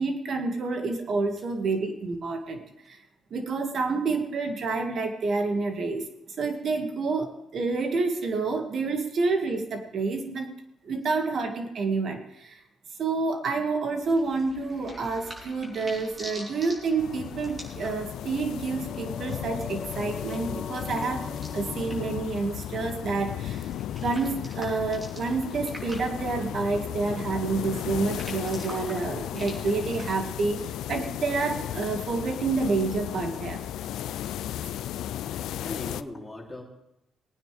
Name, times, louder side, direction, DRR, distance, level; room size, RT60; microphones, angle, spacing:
voice 1, 0.0-3.0 3.3-6.0 6.4-10.5 10.8-12.5 13.0-21.2 21.5-23.6 24.0-30.6 30.9-33.6, right 4 dB, 55° right, 4 dB, 2.1 m, -28 dB
sound 1, 13.7-22.3, left 4 dB, 40° left, 1.1 m, -43 dB
sound 2, 14.0-31.1, equal, 25° right, 4.1 m, -47 dB
sound 3, 17.0-36.0, left 11 dB, 80° left, 0.4 m, -35 dB
voice 2, 35.3-36.6, left 2 dB, 10° left, -3 dB, 3.4 m, -39 dB
20.0 x 9.5 x 3.5 m, 0.84 s
cardioid pair, 90°, 0 cm